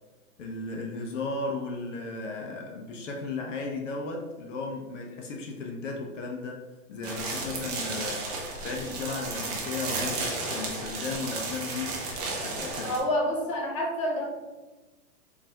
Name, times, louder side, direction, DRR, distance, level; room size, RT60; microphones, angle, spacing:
voice 1, 0.4-6.6 6.9-8.3 8.6-12.0 12.4-12.9, left 3 dB, 55° left, 1 dB, 0.8 m, -35 dB
sound 1, 7.0-13.0, right 3 dB, 25° right, 0.6 m, -33 dB
voice 2, 12.8-14.2, left 1 dB, 20° left, -2 dB, 0.5 m, -28 dB
4.0 x 3.2 x 2.8 m, 1.2 s
hypercardioid pair, 150°, 45 cm